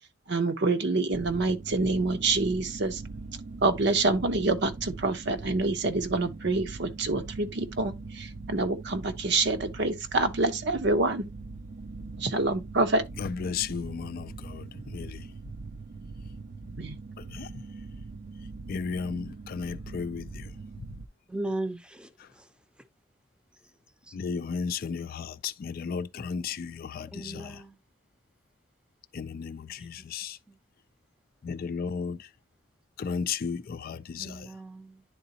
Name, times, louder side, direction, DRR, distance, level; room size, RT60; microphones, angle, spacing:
voice 1, 0.3-3.0 3.6-11.2 12.2-13.0 16.8-17.0, right 3 dB, 60° right, 0.8 m, -27 dB
sound 1, 1.1-21.1, right 3 dB, 40° right, 0.4 m, -42 dB
voice 2, 13.2-15.2 17.2-17.6 18.7-20.5 24.1-27.6 29.1-30.4 31.4-32.3 33.0-34.5, left 6 dB, 50° left, 0.4 m, -34 dB
voice 3, 21.3-22.1 22.3-22.5 24.1-24.2 27.0-27.8 30.0-30.1 30.5-30.6 34.2-35.0, right 2 dB, 5° right, 0.6 m, -37 dB
10.0 x 3.8 x 2.8 m
head